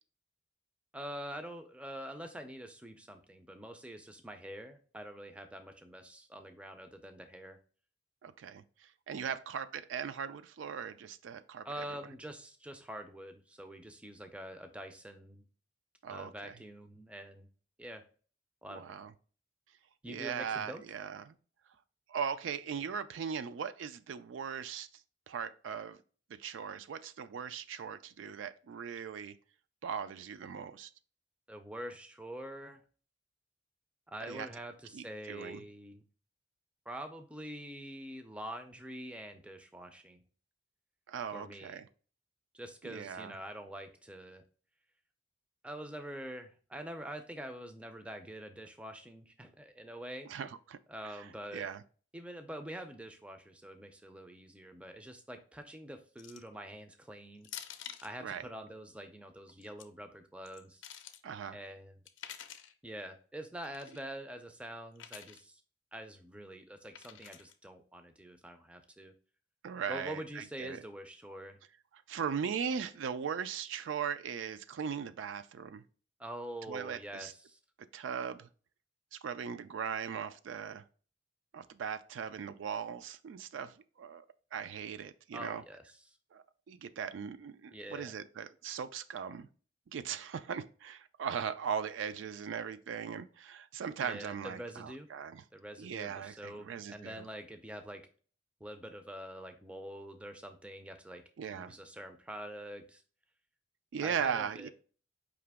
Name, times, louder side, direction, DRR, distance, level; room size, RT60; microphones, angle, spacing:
voice 1, 0.9-7.6 9.2-9.3 11.6-15.4 16.1-17.5 17.8-18.0 18.6-19.0 20.0-20.8 31.5-32.8 34.1-36.0 36.9-40.2 41.3-41.8 42.5-44.4 45.6-50.3 50.9-51.7 52.1-57.5 58.0-60.8 61.5-62.0 62.8-65.6 65.9-69.1 69.9-71.6 76.2-77.6 85.3-86.2 87.7-88.2 94.0-95.1 95.5-98.1 98.6-101.2 101.5-103.0 104.0-104.7, right 1 dB, 5° right, 0.4 m, -45 dB
voice 2, 8.2-8.6 9.1-11.8 16.0-16.5 18.7-19.1 20.1-21.3 22.1-24.9 25.3-26.0 26.3-29.3 29.8-30.9 34.2-34.5 34.9-35.6 41.1-41.8 42.8-43.3 50.3-50.8 51.5-51.8 58.2-58.4 61.2-61.6 69.6-70.8 72.1-75.8 76.7-77.3 77.9-78.5 79.1-80.8 81.5-84.2 84.5-85.6 86.3-89.5 89.9-95.4 95.8-97.2 101.4-101.7 103.9-104.7, right 7 dB, 75° right, 0.3 m, -39 dB
sound 1, 56.2-56.6 57.4-58.1 59.5-59.8 60.4-61.2 62.1-62.7 63.6-64.0 65.0-65.4 66.9-67.5, left 10 dB, 75° left, 0.5 m, -48 dB
4.9 x 2.8 x 3.4 m
head